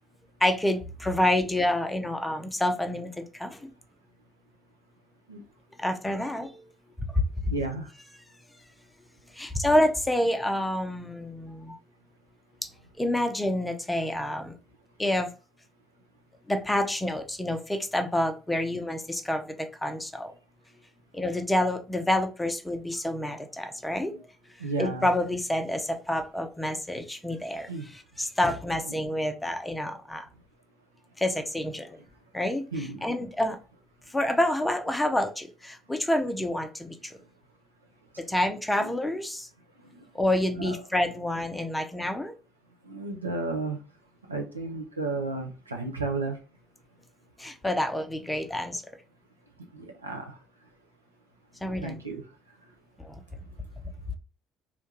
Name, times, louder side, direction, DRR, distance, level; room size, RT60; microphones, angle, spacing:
voice 1, 0.4-3.6 5.8-6.6 9.3-11.8 13.0-14.6 15.0-15.3 16.5-20.3 21.1-24.1 24.8-27.7 28.2-30.2 31.2-32.0 32.3-33.6 34.1-37.1 38.3-39.5 40.1-42.3 47.4-48.8 51.6-52.0 53.0-53.1, left 1 dB, 10° left, 6 dB, 0.5 m, -28 dB
voice 2, 7.5-7.9 24.1-24.2 24.6-25.1 27.7-27.8 28.9-29.0 32.7-33.3 38.8-38.9 40.6-40.8 42.9-43.8 44.3-46.4 49.7-50.4 51.8-52.2, right 3 dB, 85° right, 3 dB, 0.4 m, -33 dB
2.4 x 2.2 x 3.0 m, 0.33 s
figure-of-eight pair, 55°, 0 cm